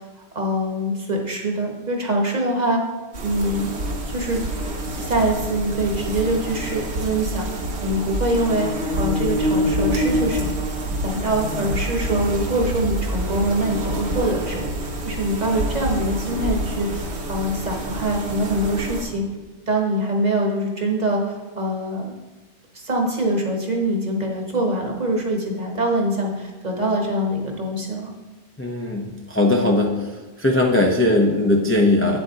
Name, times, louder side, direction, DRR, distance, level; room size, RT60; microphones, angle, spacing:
voice 1, 0.3-2.8 3.2-3.7 4.1-4.4 4.9-10.5 11.0-19.2 19.7-22.1 22.7-28.1, right 1 dB, 40° right, 1 dB, 1.1 m, -24 dB
sound 1, 3.1-19.0, equal, 65° right, 1.3 m, -27 dB
voice 2, 28.6-29.9 30.4-32.2, left 2 dB, 15° left, 0 dB, 0.5 m, -19 dB
8.9 x 7.7 x 2.8 m, 1.2 s
omnidirectional pair, 1.2 m